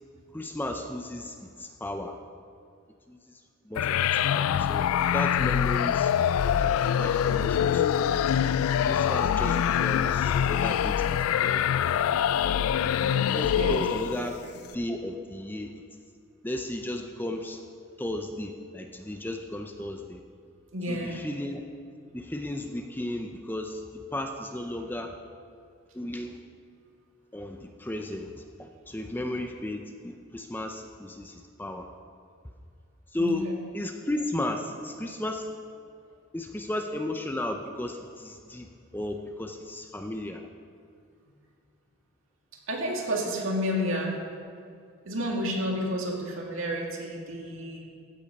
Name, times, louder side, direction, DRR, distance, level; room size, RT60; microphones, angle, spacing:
voice 1, 0.3-2.2 3.1-3.2 3.6-4.0 4.3-6.1 6.4-8.1 8.8-11.8 13.3-14.4 14.7-15.8 16.4-17.6 18.0-20.2 20.9-21.6 22.1-23.8 24.1-25.2 25.9-26.4 27.3-28.3 28.6-31.9 33.1-33.5 33.7-35.5 36.3-40.4, left 1 dB, 10° left, 4 dB, 0.5 m, -34 dB
sound 1, 3.8-14.3, left 9 dB, 80° left, 0.3 m, -24 dB
voice 2, 13.0-13.8 14.2-14.5 20.7-21.3 33.2-33.6 42.7-44.1 45.1-47.8, equal, 70° right, -1 dB, 2.2 m, -31 dB
15.0 x 8.2 x 5.2 m, 2.2 s
head